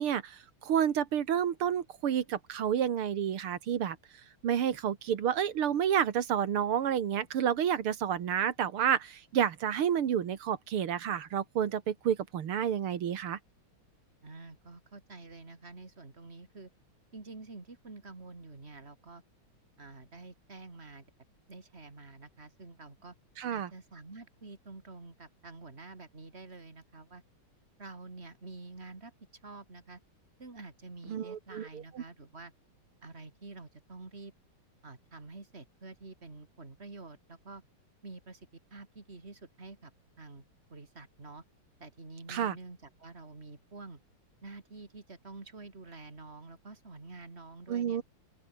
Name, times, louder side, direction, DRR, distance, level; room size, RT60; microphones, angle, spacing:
voice 1, 0.0-4.0 4.4-13.4 23.4-23.7 31.1-32.0 42.3-42.6 47.7-48.0, right 9 dB, 90° right, 2.5 m, -30 dB
voice 2, 14.2-16.7 17.1-19.2 19.8-21.1 21.5-23.1 23.5-27.2 27.8-29.1 29.4-30.0 30.4-32.5 33.0-34.3 34.8-37.6 38.0-39.9 40.2-40.4 40.7-41.4 41.8-44.0 44.4-48.0, right 3 dB, 30° right, 3.5 m, -48 dB
open air
omnidirectional pair, 2.3 m